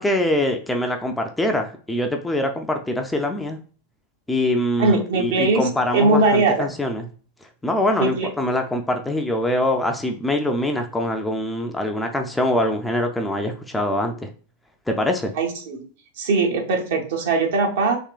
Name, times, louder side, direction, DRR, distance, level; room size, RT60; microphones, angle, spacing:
voice 1, 0.0-3.6 4.3-7.0 7.6-14.3 14.9-15.3, left 1 dB, 5° left, 4 dB, 0.4 m, -23 dB
voice 2, 4.8-5.7 5.9-6.7 8.0-8.3 15.3-15.9 16.2-18.0, right 3 dB, 55° right, 1 dB, 0.9 m, -20 dB
3.5 x 2.9 x 2.4 m, 0.41 s
figure-of-eight pair, 90°, 0 cm